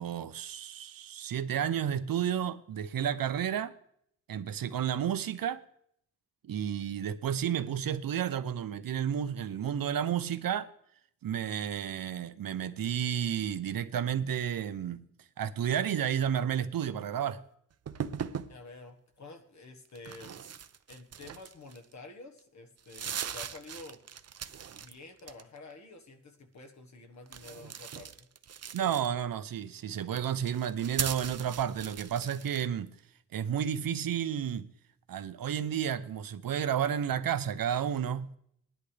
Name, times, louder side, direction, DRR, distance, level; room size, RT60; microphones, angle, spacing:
voice 1, 0.0-3.7 4.3-5.6 6.4-10.7 11.2-15.1 15.4-17.4 28.7-32.9 33.3-34.7 35.1-38.4, right 9 dB, 85° right, 0.7 m, -31 dB
sound 1, 17.9-18.5 19.9-21.9 22.4-22.5 22.8-24.9 25.2-25.7 27.3-29.3 30.0-32.7, right 8 dB, 50° right, 0.5 m, -39 dB
voice 2, 18.5-20.3 20.9-24.0 24.8-28.3, left 3 dB, 55° left, 1.4 m, -49 dB
19.5 x 10.5 x 3.3 m
wide cardioid pair, 175°, 33 cm